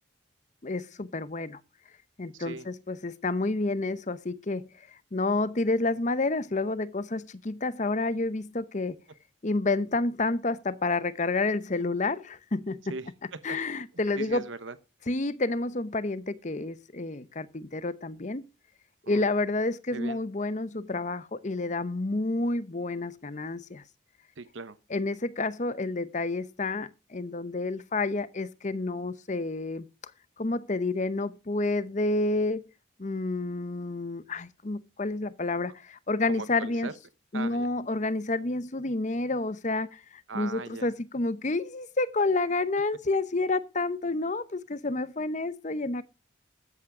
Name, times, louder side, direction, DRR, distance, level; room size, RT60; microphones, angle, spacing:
voice 1, 0.6-1.6 2.2-9.0 9.4-12.8 13.4-14.4 15.1-18.4 19.1-23.8 24.9-29.8 30.4-32.6 33.0-36.9 37.3-46.0, left 2 dB, 35° left, 0.8 m, -29 dB
voice 2, 2.3-2.7 12.9-13.6 14.1-14.8 19.1-19.2 19.9-20.2 24.4-24.8 36.3-36.9 37.3-37.7 40.3-40.9, right 3 dB, 70° right, 1.0 m, -39 dB
13.0 x 8.5 x 4.9 m
head